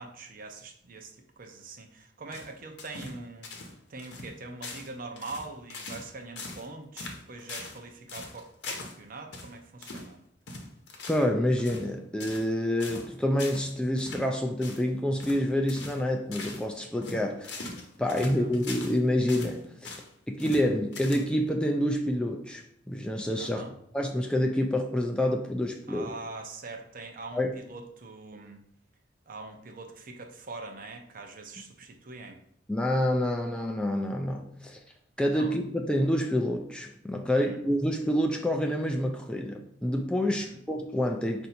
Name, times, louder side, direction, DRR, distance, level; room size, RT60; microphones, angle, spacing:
voice 1, 0.0-3.5 3.9-10.2 18.2-18.5 23.4-23.7 25.9-28.6 29.3-32.4 35.3-35.5 37.3-37.6 40.2-40.6, right 3 dB, 50° right, 4 dB, 0.6 m, -43 dB
sound 1, 2.3-3.2 3.4-3.7 4.0-4.3 4.6-4.9 5.2-6.1 6.4-6.7 7.0-7.8 8.1-9.0 9.3-9.5 9.8-10.1 10.5-11.3 11.6-11.9 12.2-12.5 12.8-13.1 13.4-13.7 14.0-14.3 14.6-14.8 15.2-15.4 15.7-16.0 16.3-16.6 17.0-19.0 19.3-20.1 20.4-20.7 20.9-21.5, left 3 dB, 70° left, 0.8 m, -41 dB
voice 2, 11.1-17.7 18.0-19.9 20.3-23.6 23.9-26.1 27.3-27.5 32.7-34.8 35.2-41.5, left 1 dB, 5° left, 2 dB, 0.3 m, -28 dB
4.6 x 2.6 x 4.3 m, 0.71 s
head